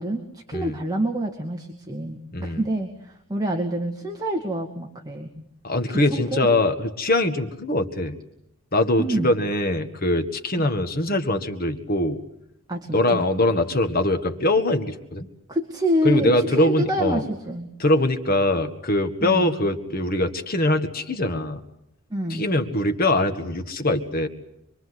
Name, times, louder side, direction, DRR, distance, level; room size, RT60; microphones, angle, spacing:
voice 1, 0.0-5.3 5.9-6.5 9.0-9.3 12.7-13.2 15.5-17.7 19.2-19.5 22.1-22.4, right 1 dB, 20° right, 1 dB, 2.3 m, -27 dB
voice 2, 5.6-8.2 8.7-12.2 12.9-15.3 16.0-17.2 17.8-21.6 22.3-24.3, left 1 dB, 45° left, 6 dB, 1.8 m, -22 dB
26.5 x 23.0 x 8.1 m, 0.79 s
head